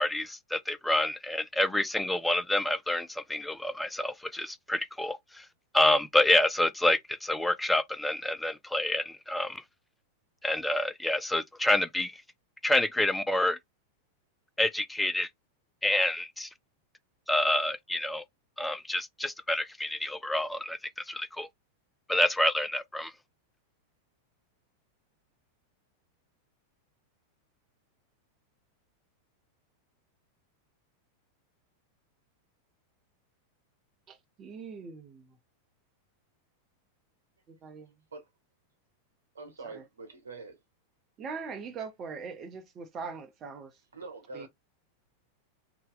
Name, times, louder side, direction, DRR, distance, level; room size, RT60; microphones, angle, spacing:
voice 1, 0.0-5.4 5.7-9.6 10.4-12.1 12.6-13.6 14.6-15.3 15.8-16.5 17.3-18.2 18.6-20.8 21.1-21.5 22.1-23.1, left 1 dB, 5° left, 0.3 m, -28 dB
voice 2, 34.1-35.3 37.5-37.9 39.6-39.8 41.2-43.7 44.3-44.5, right 5 dB, 30° right, 0.7 m, -41 dB
voice 3, 39.3-40.6 43.9-44.5, right 3 dB, 70° right, 1.0 m, -44 dB
2.7 x 2.2 x 3.8 m
figure-of-eight pair, 90°, 0 cm